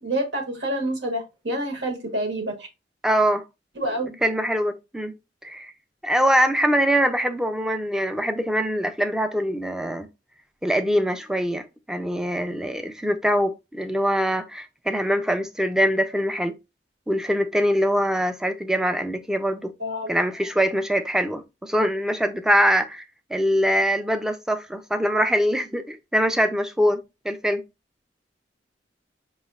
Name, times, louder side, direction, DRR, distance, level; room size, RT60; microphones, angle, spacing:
voice 1, 0.0-2.6 3.8-4.2 19.8-20.1, right 1 dB, 80° right, 1.3 m, -27 dB
voice 2, 3.0-3.4 4.2-5.1 5.4-5.7 6.0-10.1 10.6-16.5 17.1-19.7 20.1-23.0 23.3-27.6, equal, 5° right, 0.4 m, -23 dB
5.2 x 3.1 x 2.4 m
head